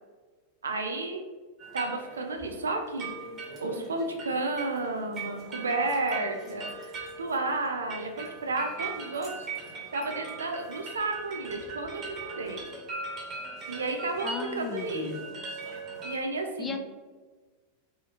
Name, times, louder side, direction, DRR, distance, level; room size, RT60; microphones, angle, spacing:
voice 1, 0.6-1.2 1.7-3.1 3.6-9.3 9.9-12.6 13.7-15.1 16.0-16.8, right 2 dB, 70° right, 4 dB, 0.4 m, -32 dB
sound 1, 1.6-16.1, right 4 dB, 30° right, 1.0 m, -40 dB
voice 2, 14.2-15.2 16.6-16.8, left 4 dB, 20° left, 4 dB, 0.4 m, -35 dB
4.2 x 2.4 x 2.8 m, 1.4 s
figure-of-eight pair, 90°, 0 cm